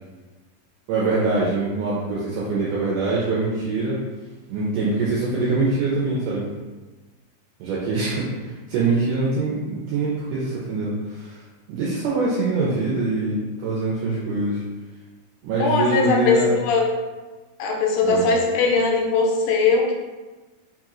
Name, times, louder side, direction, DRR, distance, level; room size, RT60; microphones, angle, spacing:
voice 1, 0.9-4.0 4.5-6.5 7.6-11.4 11.7-14.6 15.4-16.5 18.0-18.3, right 3 dB, 75° right, -6 dB, 2.0 m, -24 dB
voice 2, 15.6-16.9 17.6-19.9, left 4 dB, 80° left, 0 dB, 2.3 m, -20 dB
5.3 x 2.9 x 2.4 m, 1.2 s
omnidirectional pair, 4.1 m